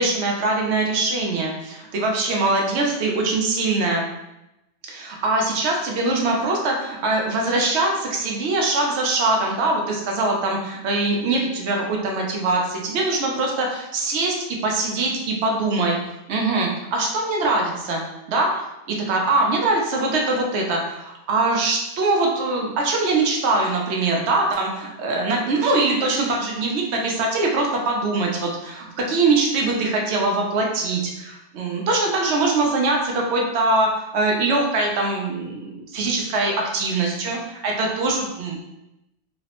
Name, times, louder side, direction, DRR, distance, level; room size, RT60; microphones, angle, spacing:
voice 1, 0.0-4.1 4.9-16.0 16.3-38.6, right 2 dB, 70° right, 0 dB, 0.9 m, -22 dB
3.1 x 2.0 x 2.9 m, 0.92 s
omnidirectional pair, 1.2 m